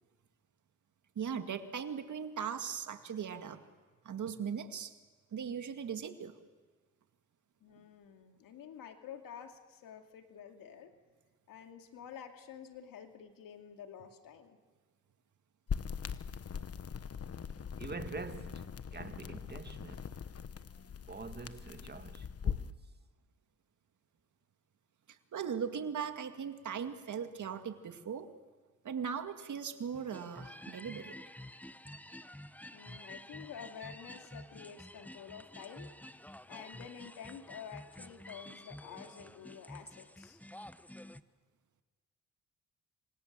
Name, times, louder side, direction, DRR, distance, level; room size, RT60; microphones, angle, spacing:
voice 1, 1.2-3.6 4.0-4.9 5.3-6.3 25.1-28.3 28.8-31.1, right 7 dB, 65° right, 2.1 m, -39 dB
voice 2, 7.6-10.9 11.5-14.6 32.7-35.9 36.5-40.4, left 8 dB, 90° left, 2.5 m, -49 dB
sound 1, 15.7-22.7, left 7 dB, 45° left, 1.2 m, -41 dB
voice 3, 17.8-20.1 21.1-22.7, right 4 dB, 30° right, 1.8 m, -45 dB
sound 2, 29.9-41.2, left 1 dB, 5° left, 0.9 m, -50 dB
27.5 x 25.5 x 7.6 m
cardioid pair, 70°, 32 cm